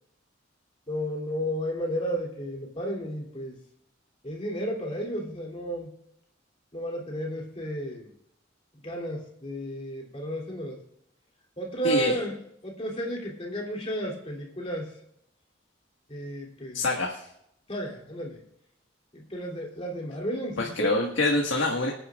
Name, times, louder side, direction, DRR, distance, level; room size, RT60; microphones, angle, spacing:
voice 1, 0.9-3.6 4.2-5.9 6.7-8.1 8.8-10.8 11.6-12.4 12.6-14.9 16.1-16.8 17.7-18.4 19.1-21.1, right 1 dB, 30° left, -1 dB, 3.1 m, -32 dB
voice 2, 11.8-12.2 16.7-17.2 20.6-21.9, left 2 dB, 85° left, -1 dB, 1.7 m, -25 dB
25.5 x 10.0 x 2.5 m, 0.74 s
head